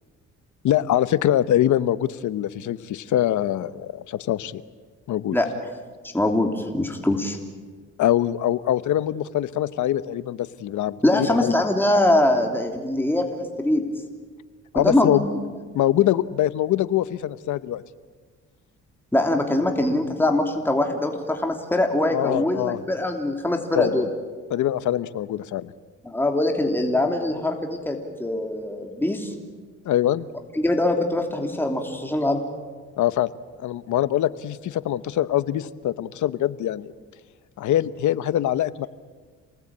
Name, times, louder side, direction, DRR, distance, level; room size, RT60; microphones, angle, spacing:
voice 1, 0.6-4.6 5.1-5.4 8.0-11.5 14.7-15.2 15.7-17.8 22.1-22.8 23.7-24.0 24.5-25.7 29.8-30.3 33.0-33.3 33.6-36.9 37.6-38.9, left 12 dB, 75° left, 15 dB, 1.0 m, -23 dB
voice 2, 6.0-7.4 11.0-13.8 14.7-15.3 19.1-24.1 26.0-29.3 30.5-32.4, left 1 dB, 5° left, 3 dB, 3.0 m, -23 dB
28.0 x 19.0 x 8.8 m, 1.5 s
cardioid pair, 90°, 30 cm